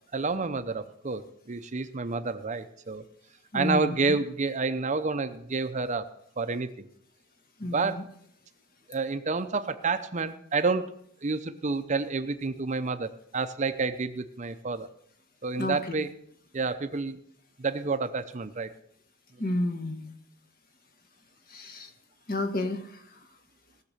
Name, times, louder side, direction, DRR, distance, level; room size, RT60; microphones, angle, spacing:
voice 1, 0.1-3.0 3.5-6.1 6.4-6.7 7.7-8.0 8.9-14.9 15.4-16.1 16.5-17.2 17.6-18.7, right 4 dB, 35° right, 10 dB, 0.7 m, -29 dB
voice 2, 3.5-3.9 7.6-7.9 15.6-15.8 19.4-20.1 21.5-21.9 22.3-22.8, left 1 dB, 45° left, 6 dB, 1.6 m, -30 dB
18.0 x 6.7 x 6.6 m, 0.69 s
head